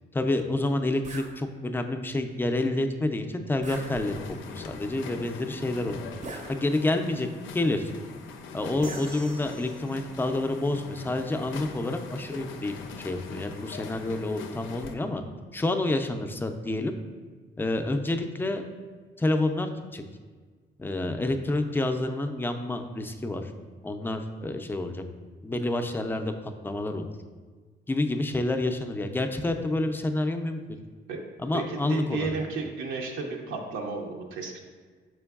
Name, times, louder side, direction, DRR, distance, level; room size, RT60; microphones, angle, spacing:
voice 1, 0.1-4.2 4.5-6.1 6.5-7.3 7.5-7.9 8.5-15.2 15.5-16.9 17.6-18.6 19.2-20.0 20.8-23.5 23.8-25.0 25.4-26.3 26.6-27.1 27.9-30.6 31.4-32.3, left 2 dB, 10° left, 6 dB, 0.3 m, -28 dB
sound 1, 1.0-1.4 3.6-4.4 6.2-7.0 8.8-9.9, right 3 dB, 40° right, 0.5 m, -42 dB
sound 2, 3.7-14.9, left 5 dB, 80° left, 0.4 m, -42 dB
voice 2, 31.5-34.6, right 4 dB, 85° right, 1 dB, 0.6 m, -33 dB
5.1 x 4.5 x 2.3 m, 1.5 s
cardioid pair, 90°, 20 cm